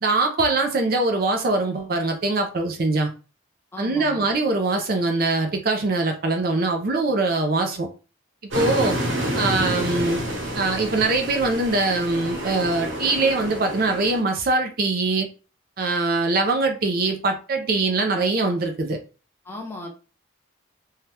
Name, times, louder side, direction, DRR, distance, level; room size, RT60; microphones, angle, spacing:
voice 1, 0.0-3.1 3.8-7.9 8.5-9.0 9.3-10.2 10.5-15.3 15.8-19.0, right 3 dB, 45° right, 0.5 m, -22 dB
voice 2, 3.7-4.2 19.4-19.9, left 2 dB, 10° left, 0.7 m, -36 dB
sound 1, 8.5-14.2, right 1 dB, 70° right, 1.3 m, -28 dB
2.8 x 2.3 x 3.2 m
head